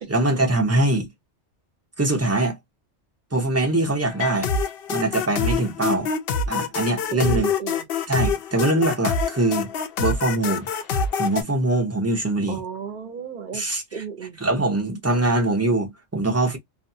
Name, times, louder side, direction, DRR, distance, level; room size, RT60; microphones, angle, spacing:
voice 1, 0.1-1.1 2.0-2.6 3.3-4.5 4.9-6.1 6.5-7.5 8.1-9.7 10.0-10.7 11.1-12.6 13.5-13.8 14.4-16.6, right 2 dB, 20° right, 0.5 m, -22 dB
sound 1, 4.1-11.4, left 5 dB, 65° left, 0.7 m, -25 dB
voice 2, 7.1-7.9 12.5-13.6 13.9-14.4, right 6 dB, 50° right, 0.8 m, -33 dB
2.5 x 2.3 x 2.6 m
omnidirectional pair, 1.2 m